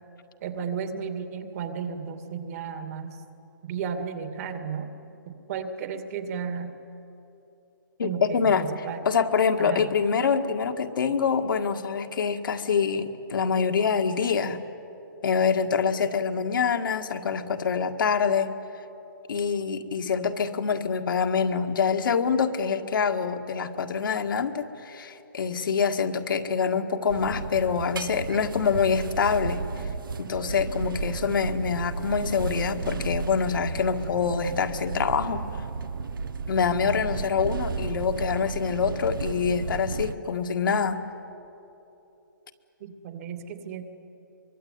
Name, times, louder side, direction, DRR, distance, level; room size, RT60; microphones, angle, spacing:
voice 1, 0.4-3.2 3.6-4.9 5.3-6.7 8.0-9.0 9.6-9.9 42.8-43.8, right 6 dB, 45° right, 7 dB, 2.3 m, -34 dB
voice 2, 8.0-14.6 15.2-18.5 19.3-29.6 30.2-35.4 36.5-41.0, left 6 dB, 75° left, 6 dB, 1.8 m, -25 dB
sound 1, 27.1-40.2, right 4 dB, 80° right, 1.0 m, -33 dB
24.0 x 22.5 x 9.5 m, 3.0 s
hypercardioid pair, 150°, 11 cm